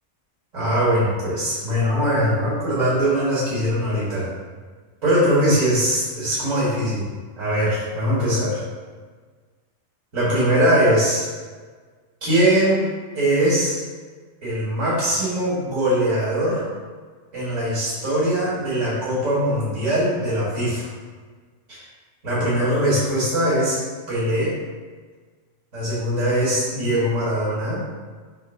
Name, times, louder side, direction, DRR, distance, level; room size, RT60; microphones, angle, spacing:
voice 1, 0.5-4.2 5.0-7.1 7.4-8.6 10.1-11.3 12.2-12.8 13.1-13.8 14.4-16.6 17.3-20.9 21.7-21.8 22.2-23.8 24.1-24.5 25.7-27.8, equal, 75° right, -10 dB, 2.5 m, -21 dB
7.2 x 2.7 x 5.8 m, 1.5 s
omnidirectional pair, 1.4 m